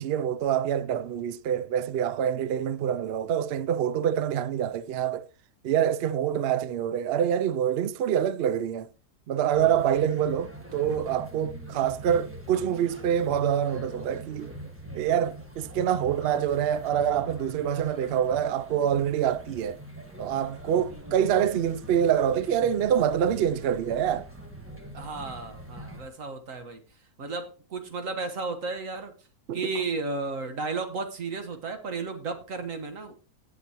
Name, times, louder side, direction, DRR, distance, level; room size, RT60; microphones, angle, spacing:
voice 1, 0.0-5.3 5.6-8.9 9.3-14.5 14.9-19.8 20.2-24.3 29.5-29.6, right 9 dB, 80° right, 0.5 m, -26 dB
sound 1, 9.5-26.1, right 1 dB, 10° right, 1.4 m, -43 dB
voice 2, 20.9-21.2 24.9-26.8 27.2-29.1 29.5-33.1, right 3 dB, 55° right, 1.6 m, -34 dB
17.5 x 6.0 x 3.0 m
omnidirectional pair, 1.7 m